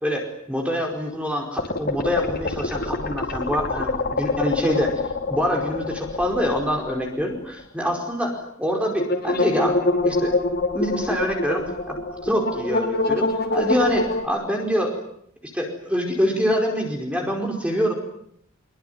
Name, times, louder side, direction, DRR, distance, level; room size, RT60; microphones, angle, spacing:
voice 1, 0.0-4.9 5.3-10.3 10.7-12.0 12.2-15.0 15.4-17.9, equal, 5° right, 2 dB, 4.8 m, -25 dB
sound 1, 1.6-7.3 7.6-7.7 9.0-14.2, left 2 dB, 50° left, 5.1 m, -25 dB
24.5 x 24.5 x 9.4 m, 0.70 s
head